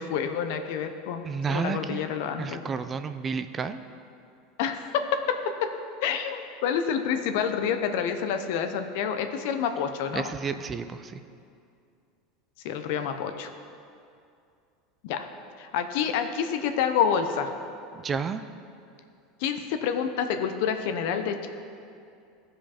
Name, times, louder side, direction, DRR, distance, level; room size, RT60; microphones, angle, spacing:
voice 1, 0.0-2.6 4.6-5.7 6.0-10.3 12.6-13.5 15.0-15.3 15.6-17.5 19.4-21.5, left 7 dB, 70° left, 7 dB, 0.7 m, -28 dB
voice 2, 1.2-2.1 2.4-3.8 10.1-11.2 18.0-18.4, right 5 dB, 25° right, 11 dB, 0.4 m, -31 dB
15.0 x 5.1 x 4.3 m, 2.5 s
supercardioid pair, 115°, 0 cm